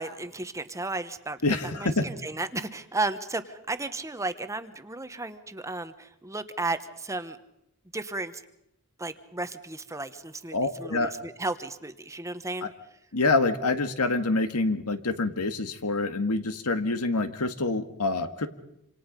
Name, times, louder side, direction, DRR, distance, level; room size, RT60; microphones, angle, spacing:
voice 1, 0.0-7.4 7.9-8.4 9.0-12.7, right 2 dB, 15° right, 10 dB, 1.1 m, -34 dB
voice 2, 1.4-2.1 10.5-11.1 13.1-18.5, left 3 dB, 90° left, 9 dB, 1.8 m, -26 dB
27.0 x 27.0 x 5.3 m, 0.82 s
head